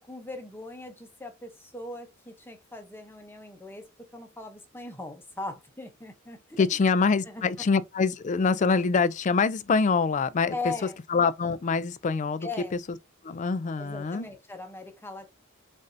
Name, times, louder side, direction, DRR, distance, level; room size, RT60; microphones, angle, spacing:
voice 1, 0.0-3.9 4.1-6.6 7.3-7.4 10.5-11.0 12.4-12.7 13.8-15.3, left 3 dB, 10° left, 0.8 m, -39 dB
voice 2, 6.6-10.7 11.1-12.8 13.2-14.3, left 4 dB, 35° left, 0.4 m, -25 dB
5.3 x 2.6 x 2.6 m
head